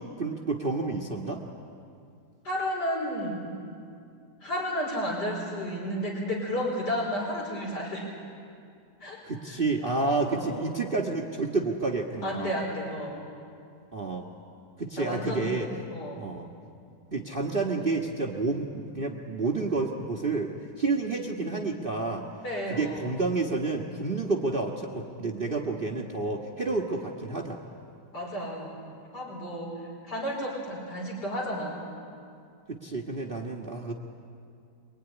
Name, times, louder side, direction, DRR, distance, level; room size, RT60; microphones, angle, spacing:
voice 1, 0.0-1.4 9.2-12.6 13.9-14.3 14.8-15.7 16.1-16.5 17.1-22.2 22.7-27.6 32.7-33.9, right 3 dB, 30° right, 0 dB, 1.6 m, -30 dB
voice 2, 2.4-3.5 4.4-8.1 9.0-9.2 9.4-9.6 10.3-10.6 12.2-13.2 15.0-15.6 15.9-16.2 22.4-23.2 28.1-28.7 29.1-31.8, equal, 70° left, -2 dB, 5.1 m, -32 dB
24.0 x 23.0 x 9.9 m, 2.4 s
omnidirectional pair, 1.9 m